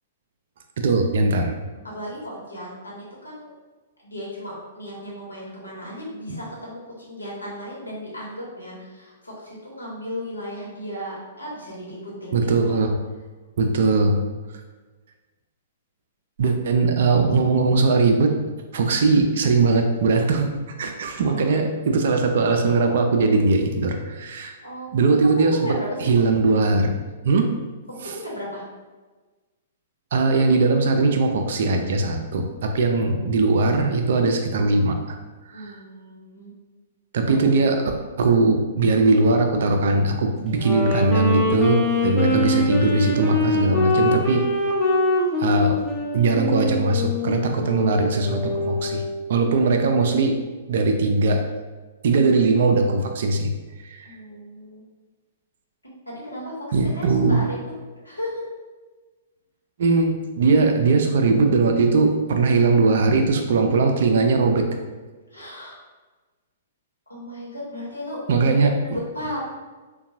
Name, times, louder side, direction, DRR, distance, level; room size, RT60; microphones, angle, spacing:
voice 1, 0.8-1.6 12.3-13.0 13.6-14.2 16.4-18.3 18.7-20.5 20.8-24.6 24.9-25.6 26.0-26.9 27.2-27.5 28.0-28.1 30.1-35.2 35.5-35.8 37.1-37.8 38.2-44.4 45.4-45.8 46.1-49.0 49.3-50.4 50.7-51.4 52.0-53.5 53.8-54.1 56.7-57.5 59.8-64.7 68.3-68.8, right 3 dB, 55° right, 4 dB, 0.4 m, -20 dB
voice 2, 1.8-3.5 4.0-12.7 21.3-21.6 24.4-24.9 25.2-25.9 27.9-28.6 35.5-36.5 54.0-54.8 56.0-57.7 58.0-58.4 65.3-65.8 67.1-68.2 68.8-69.4, equal, 85° left, -5 dB, 1.0 m, -35 dB
Wind instrument woodwind instrument, 40.5-49.2, left 2 dB, 15° left, 0.6 m, -24 dB
3.6 x 2.2 x 2.7 m, 1.3 s
figure-of-eight pair, 110°, 0 cm